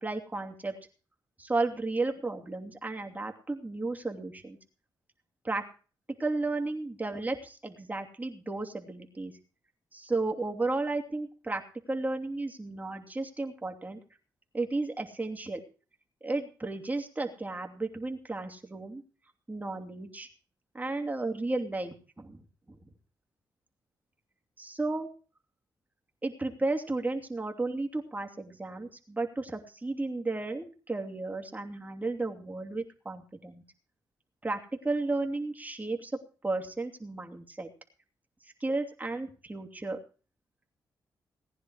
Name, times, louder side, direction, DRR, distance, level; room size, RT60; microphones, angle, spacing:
voice 1, 0.0-0.7 1.4-4.6 5.4-5.6 6.2-9.3 9.9-11.6 11.9-14.0 14.5-15.6 16.2-19.0 19.5-20.3 20.7-22.8 24.6-25.1 26.2-33.6 34.4-36.1 36.4-37.7 38.6-40.0, right 2 dB, 20° right, 3 dB, 2.8 m, -33 dB
19.0 x 10.0 x 4.8 m, 0.38 s
cardioid pair, 70°, 8 cm